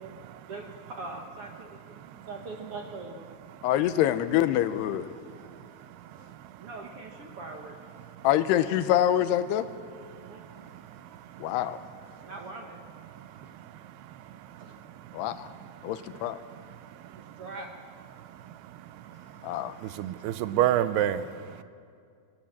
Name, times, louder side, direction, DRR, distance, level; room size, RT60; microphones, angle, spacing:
voice 1, 0.0-3.2 6.6-7.9 10.3-10.6 12.2-12.8 14.6-14.7 17.2-17.8, right 3 dB, 60° right, 2 dB, 1.6 m, -42 dB
voice 2, 2.0-2.3 5.3-6.7 8.2-8.3 10.1-11.5 12.1-12.3 13.1-15.9 16.5-17.4 18.1-21.6, right 12 dB, 85° right, 13 dB, 2.8 m, -34 dB
voice 3, 3.6-5.1 8.2-9.7 11.4-11.8 15.1-15.5 15.8-16.4 19.4-19.8, left 12 dB, 85° left, 12 dB, 2.9 m, -25 dB
26.5 x 16.5 x 7.4 m, 2.3 s
omnidirectional pair, 4.6 m